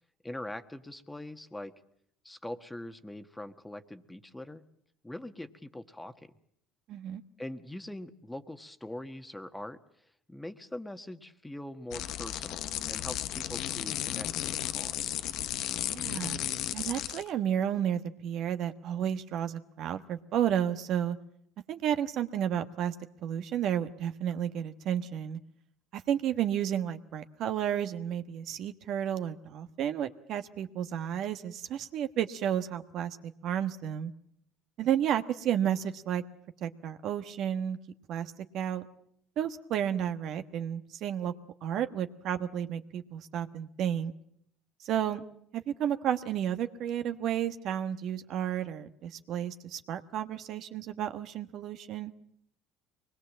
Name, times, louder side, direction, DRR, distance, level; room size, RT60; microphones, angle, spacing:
voice 1, 0.2-1.7 2.2-4.6 5.0-6.3 7.4-9.8 10.3-15.1, left 1 dB, 10° left, 9 dB, 1.5 m, -42 dB
voice 2, 6.9-7.2 15.9-16.4 16.7-21.2 21.7-22.9 23.2-25.4 25.9-33.2 33.4-34.1 34.8-36.2 36.6-37.8 38.1-38.8 39.4-41.3 41.6-44.1 44.8-45.3 45.5-52.1, right 9 dB, 60° right, 9 dB, 1.3 m, -32 dB
sound 1, 11.9-17.3, left 12 dB, 65° left, 0.9 m, -34 dB
23.5 x 20.5 x 7.5 m, 0.71 s
supercardioid pair, 80°, 0 cm